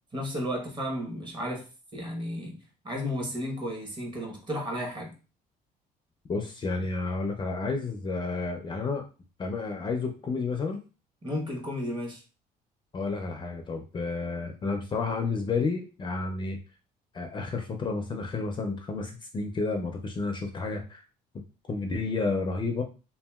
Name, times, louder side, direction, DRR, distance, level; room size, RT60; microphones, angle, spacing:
voice 1, 0.1-2.6 2.8-5.1 11.2-12.2, equal, 25° right, 1.0 m, -33 dB
voice 2, 6.3-9.1 9.4-10.8 12.9-16.6 17.1-21.0 21.7-22.8, left 3 dB, 30° left, 0.4 m, -31 dB
2.8 x 2.6 x 2.2 m
cardioid pair, 110°, 17 cm